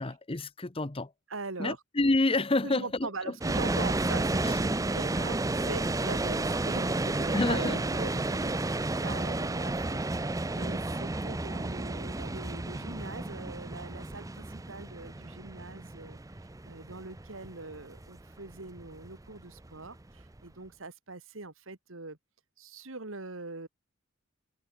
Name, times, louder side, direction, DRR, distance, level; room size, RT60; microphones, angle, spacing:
voice 1, 0.0-1.1 1.6-3.3 4.4-4.6 7.3-7.8, left 2 dB, 25° left, 0.9 m, -28 dB
voice 2, 1.3-1.8 2.6-16.2 16.6-22.2 22.6-23.7, right 3 dB, 70° right, 2.1 m, -42 dB
sound 1, 3.4-20.4, right 2 dB, 15° right, 0.6 m, -32 dB
head